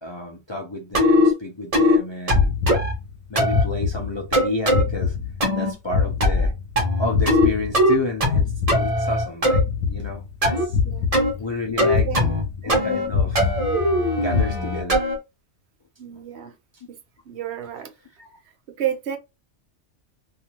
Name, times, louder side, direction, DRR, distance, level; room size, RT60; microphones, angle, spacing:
voice 1, 0.0-2.5 3.3-5.1 5.5-6.5 7.0-10.8 11.4-12.1 12.6-13.5 14.2-15.1 18.2-18.3, left 2 dB, 45° left, 0.3 m, -31 dB
sound 1, 0.9-1.3 1.7-2.0 2.3-2.9 3.4-3.6 4.3-4.8 5.4-5.7 6.2-6.5 6.8-7.5 7.7-8.4 8.7-9.6 10.4-10.7 11.1-11.3 11.8-12.4 12.7-13.1 13.4-15.2, left 1 dB, 35° right, 1.0 m, -20 dB
sound 2, 2.3-3.2 3.5-4.4 4.7-6.8 7.1-9.2 9.5-10.4 10.7-11.6 11.9-12.8 13.1-14.0 14.3-14.5, left 5 dB, 80° left, 0.9 m, -25 dB
voice 2, 11.8-12.3 16.0-16.5 17.3-17.9 18.8-19.2, right 10 dB, 65° right, 0.9 m, -30 dB
2.6 x 2.4 x 2.9 m
omnidirectional pair, 1.2 m